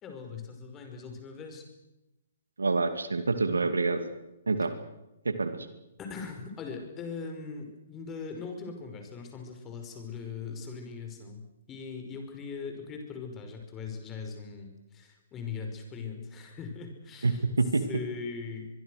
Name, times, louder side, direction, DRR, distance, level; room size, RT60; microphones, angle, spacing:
voice 1, 0.0-1.7 6.0-17.4 17.9-18.7, left 5 dB, 20° left, 4 dB, 5.4 m, -40 dB
voice 2, 2.6-4.0 4.5-4.7 5.2-5.5 17.2-17.8, right 3 dB, 80° right, 9 dB, 2.4 m, -26 dB
24.0 x 23.0 x 6.6 m, 0.97 s
figure-of-eight pair, 125°, 0 cm